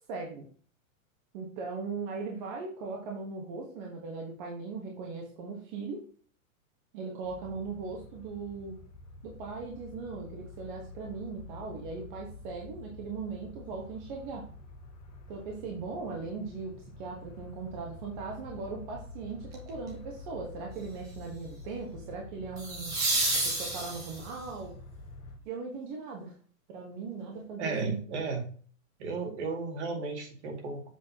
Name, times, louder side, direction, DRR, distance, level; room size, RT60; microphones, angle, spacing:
voice 1, 0.1-0.5 1.3-6.1 6.9-8.8 9.2-14.5 15.3-22.9 23.3-24.8 25.4-26.3 26.7-28.3, right 4 dB, 35° right, 0 dB, 1.4 m, -39 dB
sound 1, 7.2-25.4, left 2 dB, 20° left, 2.5 m, -48 dB
sound 2, 19.5-19.9 22.6-24.4 27.3-27.4, right 2 dB, 10° right, 0.4 m, -30 dB
voice 2, 27.6-28.4 29.0-30.8, right 4 dB, 55° right, 2 dB, 2.4 m, -34 dB
7.5 x 6.5 x 2.9 m, 0.43 s
supercardioid pair, 165°, 41 cm